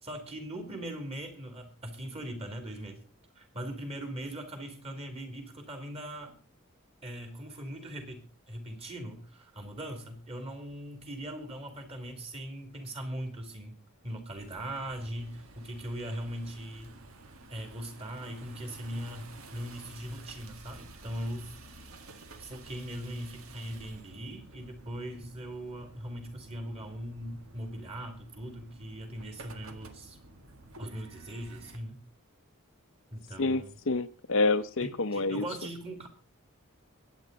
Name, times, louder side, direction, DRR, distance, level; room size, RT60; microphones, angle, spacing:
voice 1, 0.0-3.0 3.3-6.3 7.0-13.8 14.0-16.9 17.5-21.5 22.4-30.2 30.8-32.0 33.1-33.7 34.8-36.1, right 1 dB, 30° right, 5 dB, 3.1 m, -40 dB
sound 1, 14.3-31.8, right 2 dB, 75° right, 1.8 m, -52 dB
voice 2, 33.4-35.4, left 3 dB, 60° left, 10 dB, 0.8 m, -28 dB
22.5 x 8.9 x 4.0 m, 0.35 s
head